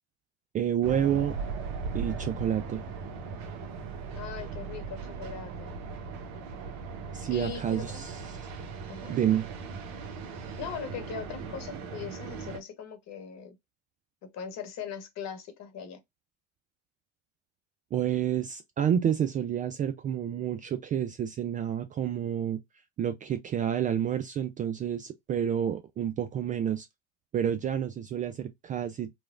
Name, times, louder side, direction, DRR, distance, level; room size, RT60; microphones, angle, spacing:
voice 1, 0.5-1.4 1.9-2.8 7.1-8.1 9.1-9.4 17.9-22.6 23.0-26.9 27.3-29.1, right 9 dB, 25° right, 0.4 m, -29 dB
sound 1, 0.8-12.6, right 5 dB, 50° right, 0.9 m, -38 dB
voice 2, 4.1-5.8 7.3-8.1 8.9-9.2 10.6-13.6 14.2-16.0, left 7 dB, 45° left, 1.1 m, -40 dB
3.0 x 2.3 x 2.4 m
hypercardioid pair, 85°, 36 cm